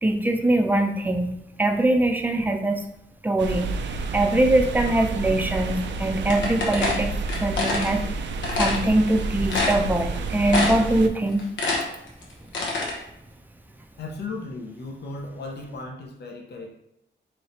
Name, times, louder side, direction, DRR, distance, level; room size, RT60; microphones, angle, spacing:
voice 1, 0.0-2.8 3.2-3.9 4.1-8.0 8.6-11.4, right 1 dB, 10° right, 4 dB, 0.4 m, -22 dB
sound 1, 3.4-11.1, right 3 dB, 75° right, 0.4 m, -30 dB
sound 2, 6.3-7.9 8.4-8.8 9.2-9.3 9.5-10.2 10.5-10.9 11.3-12.9, left 3 dB, 90° left, 0.9 m, -25 dB
voice 2, 14.0-16.8, left 3 dB, 65° left, 1 dB, 0.7 m, -36 dB
3.1 x 2.9 x 4.1 m, 0.80 s
cardioid pair, 105°, 19 cm